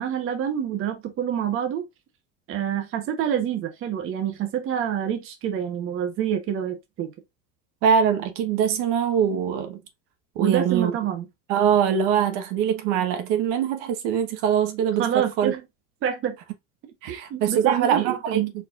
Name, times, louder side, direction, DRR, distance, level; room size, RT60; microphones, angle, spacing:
voice 1, 0.0-1.9 2.5-7.1 10.4-11.3 15.0-15.6 16.0-16.3 17.1-18.5, right 9 dB, 35° right, 1.0 m, -27 dB
voice 2, 7.8-9.8 10.3-10.9 11.5-15.5 17.0-18.4, right 8 dB, 65° right, 1.2 m, -23 dB
4.4 x 4.2 x 2.4 m
cardioid pair, 155°, 39 cm